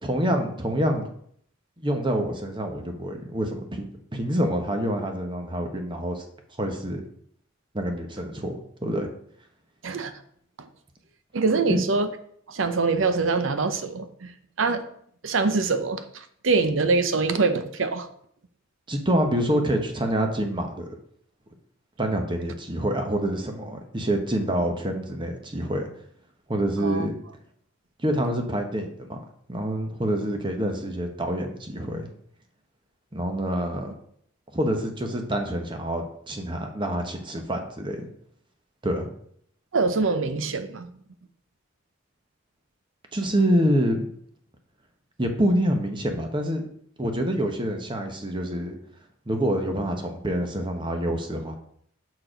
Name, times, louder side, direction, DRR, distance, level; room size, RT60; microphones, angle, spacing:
voice 1, 0.0-1.1 1.8-3.9 4.1-6.2 6.6-7.0 7.7-9.1 11.7-11.8 18.9-20.9 22.0-25.8 26.5-27.1 28.0-29.2 29.5-32.1 33.1-33.9 34.5-38.1 38.8-39.1 43.1-44.1 45.2-46.6 47.0-48.7 49.3-51.5, equal, 25° right, 4 dB, 1.0 m, -26 dB
voice 2, 11.3-12.1 12.5-14.3 14.6-14.8 15.2-18.1 26.8-27.1 39.7-41.0, right 4 dB, 80° right, 9 dB, 0.7 m, -24 dB
6.2 x 4.7 x 5.0 m, 0.65 s
head